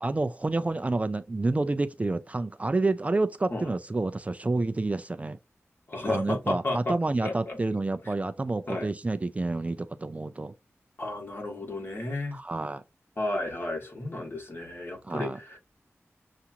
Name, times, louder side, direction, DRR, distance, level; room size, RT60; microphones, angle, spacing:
voice 1, 0.0-5.4 6.1-10.5 12.3-12.8 15.0-15.4, right 2 dB, 30° right, 0.3 m, -29 dB
voice 2, 5.9-6.9 7.2-7.6 8.7-8.9 11.0-12.4 13.2-15.6, left 2 dB, 45° left, 1.8 m, -32 dB
6.9 x 2.5 x 2.8 m
wide cardioid pair, 95°, 5 cm